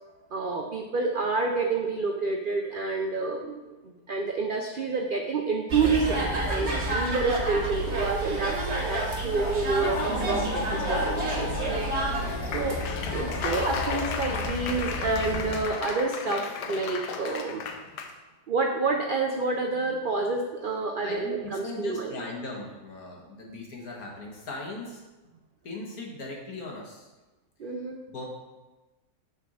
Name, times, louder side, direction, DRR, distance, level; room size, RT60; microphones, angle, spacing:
voice 1, 0.3-11.5 12.5-12.8 13.1-17.6 18.5-22.2 27.6-28.0, right 3 dB, 85° right, 2 dB, 0.4 m, -28 dB
sound 1, 5.7-15.6, right 1 dB, 45° right, 1.6 m, -30 dB
Laughter / Applause, 9.7-18.1, left 5 dB, 85° left, 1.3 m, -34 dB
voice 2, 11.4-12.8 21.0-25.0 25.6-27.1 28.1-28.2, left 2 dB, 65° left, -1 dB, 1.9 m, -39 dB
6.7 x 4.3 x 6.3 m, 1.1 s
omnidirectional pair, 1.7 m